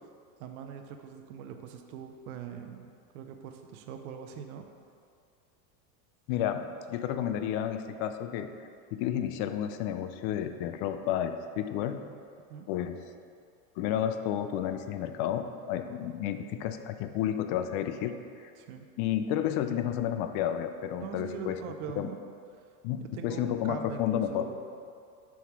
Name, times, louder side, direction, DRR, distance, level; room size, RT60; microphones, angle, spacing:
voice 1, 0.4-4.6 12.5-12.7 18.6-18.8 21.0-22.2 23.0-24.6, right 7 dB, 75° right, 5 dB, 0.7 m, -42 dB
voice 2, 6.3-8.5 8.9-12.0 12.7-13.0 13.8-18.5 19.0-21.6 22.0-22.1 22.8-24.5, left 10 dB, 50° left, 9 dB, 0.5 m, -31 dB
7.2 x 3.1 x 5.8 m, 2.3 s
supercardioid pair, 125°, 44 cm